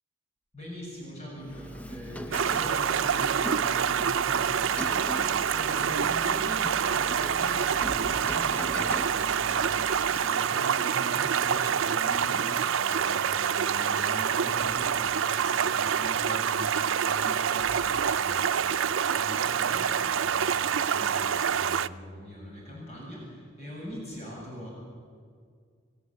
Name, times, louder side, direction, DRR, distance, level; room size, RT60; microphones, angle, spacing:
voice 1, 0.5-18.8 19.1-24.7, equal, 35° left, -3 dB, 7.8 m, -42 dB
Rain, 1.4-10.6, equal, 5° left, 0.7 m, -41 dB
Stream, 2.3-21.9, right 7 dB, 80° right, 0.5 m, -26 dB
28.5 x 15.5 x 8.9 m, 2.1 s
head